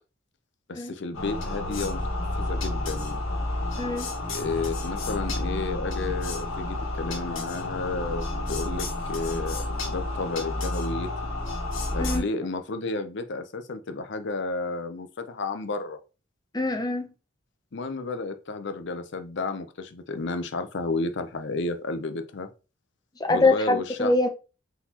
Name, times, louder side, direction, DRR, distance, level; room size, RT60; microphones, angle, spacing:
voice 1, 0.7-2.0 2.4-3.2 4.3-11.1 11.9-16.0 17.7-22.5 23.3-24.1, left 3 dB, 60° left, 0.6 m, -32 dB
sound 1, 1.1-12.2, left 2 dB, 90° left, 1.4 m, -30 dB
voice 2, 3.8-4.1 12.0-12.2 16.5-17.1 23.2-24.3, left 2 dB, 20° left, 0.6 m, -24 dB
4.1 x 4.0 x 2.9 m
head